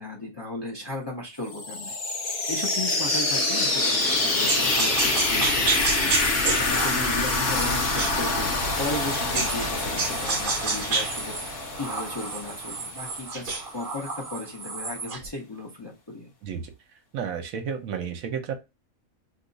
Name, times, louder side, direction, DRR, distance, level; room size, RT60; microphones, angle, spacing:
voice 1, 0.0-2.0 2.5-11.5 11.8-16.3, left 2 dB, 25° left, -2 dB, 0.6 m, -36 dB
sound 1, 1.5-13.2, left 2 dB, 50° left, 1.1 m, -26 dB
sound 2, 4.5-9.7 10.0-15.3, right 4 dB, 45° right, 0.8 m, -30 dB
voice 2, 17.1-18.5, right 7 dB, 75° right, 6 dB, 1.1 m, -31 dB
2.8 x 2.3 x 3.9 m, 0.25 s
omnidirectional pair, 1.5 m